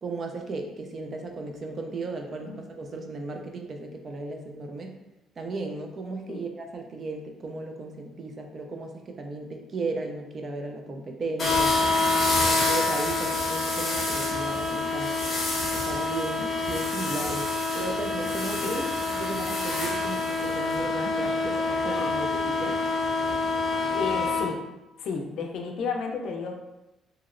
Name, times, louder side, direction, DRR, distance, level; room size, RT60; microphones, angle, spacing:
voice 1, 0.0-4.9 5.4-11.9 12.5-15.2 15.7-18.8 19.1-22.8, right 3 dB, 35° right, 3 dB, 0.4 m, -35 dB
sound 1, 11.4-24.4, left 3 dB, 35° left, 0.8 m, -26 dB
voice 2, 18.6-19.0 23.9-24.6 25.0-26.5, left 5 dB, 60° left, 2 dB, 0.4 m, -32 dB
2.9 x 2.8 x 2.4 m, 0.97 s
cardioid pair, 145°, 0 cm